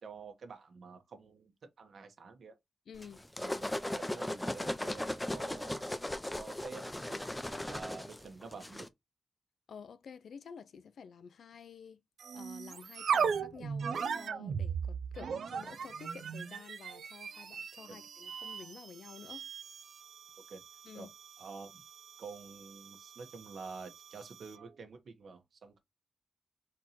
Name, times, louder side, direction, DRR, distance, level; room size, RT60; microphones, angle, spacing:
voice 1, 0.0-2.6 3.4-3.6 3.9-6.0 6.3-7.2 7.5-8.9 17.9-18.0 20.5-20.6 20.9-21.1 21.4-21.8 22.2-25.8, right 4 dB, 65° right, 1.2 m, -49 dB
voice 2, 2.9-3.2 9.7-12.0 12.3-19.5 20.8-21.1, left 6 dB, 85° left, 0.5 m, -51 dB
sound 1, 3.0-8.9, left 1 dB, 10° left, 0.5 m, -37 dB
sound 2, 12.2-24.7, right 6 dB, 90° right, 0.4 m, -39 dB
4.4 x 2.9 x 4.1 m
wide cardioid pair, 180°, 0 cm